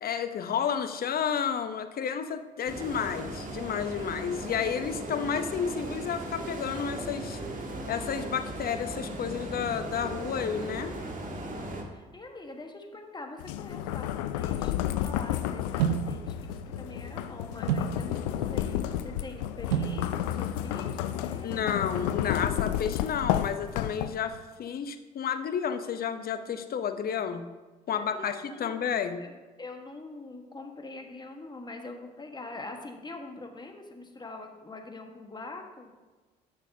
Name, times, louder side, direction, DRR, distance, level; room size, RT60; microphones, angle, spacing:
voice 1, 0.0-7.4 7.9-10.9 21.4-27.5 27.9-29.2, left 7 dB, 45° left, 9 dB, 0.8 m, -31 dB
sound 1, 2.7-11.8, right 1 dB, 40° right, 1.5 m, -37 dB
voice 2, 11.5-21.7 27.9-35.9, left 2 dB, 20° left, 3 dB, 1.4 m, -44 dB
sound 2, 13.4-24.4, left 12 dB, 80° left, 0.4 m, -31 dB
sound 3, 15.8-21.8, right 10 dB, 85° right, 0.4 m, -35 dB
12.0 x 6.3 x 2.8 m, 1.3 s
hypercardioid pair, 55°, 21 cm